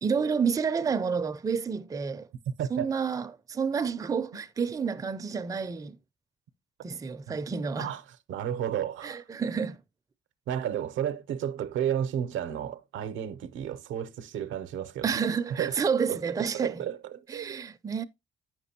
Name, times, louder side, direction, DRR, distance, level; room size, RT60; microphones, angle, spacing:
voice 1, 0.0-2.3 2.7-6.0 6.8-7.9 9.0-9.8 15.0-16.8 17.3-18.0, right 6 dB, 15° right, 0.4 m, -29 dB
voice 2, 2.6-2.9 4.3-4.4 7.3-7.4 7.8-8.0 8.3-9.2 10.5-15.8 16.1-17.6, right 9 dB, 80° right, 0.6 m, -32 dB
7.7 x 5.9 x 2.7 m
cardioid pair, 90°, 20 cm